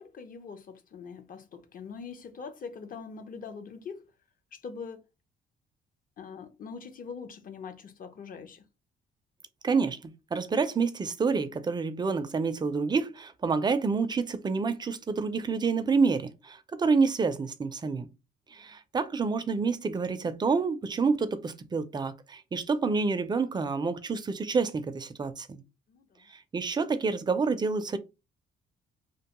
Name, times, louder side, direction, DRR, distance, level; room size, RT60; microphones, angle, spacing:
voice 1, 0.0-4.1 4.5-5.0 6.2-8.6 18.6-18.7 25.9-26.2, left 5 dB, 45° left, 0.5 m, -43 dB
voice 2, 9.6-18.1 18.5-25.6 26.3-28.0, right 4 dB, 20° right, 0.4 m, -28 dB
2.5 x 2.2 x 2.8 m
cardioid pair, 90°, 20 cm